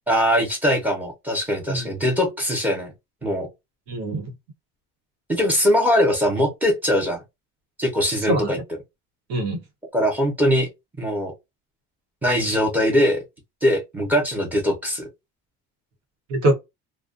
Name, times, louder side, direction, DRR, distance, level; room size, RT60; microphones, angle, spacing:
voice 1, 0.1-2.9 3.2-3.5 5.3-7.2 7.8-8.6 9.9-10.7 11.0-11.3 12.2-13.2 13.6-15.1, equal, 5° right, 0.7 m, -21 dB
voice 2, 3.9-4.3 8.3-8.6 9.3-9.6 16.3-16.6, right 1 dB, 90° right, 1.0 m, -23 dB
2.4 x 2.2 x 2.4 m
cardioid pair, 165°, 31 cm